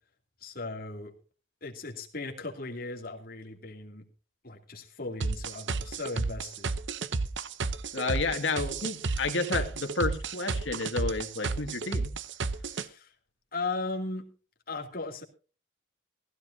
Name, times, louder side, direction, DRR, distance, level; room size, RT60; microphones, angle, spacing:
voice 1, 0.4-1.1 1.6-4.0 4.4-6.7 12.7-13.1 13.5-14.3 14.7-15.2, left 3 dB, 50° left, 1 dB, 2.7 m, -37 dB
sound 1, 5.2-12.9, right 4 dB, 70° right, 0.8 m, -31 dB
voice 2, 7.9-12.1, left 3 dB, 80° left, 4 dB, 2.1 m, -31 dB
16.5 x 16.0 x 2.7 m, 0.36 s
head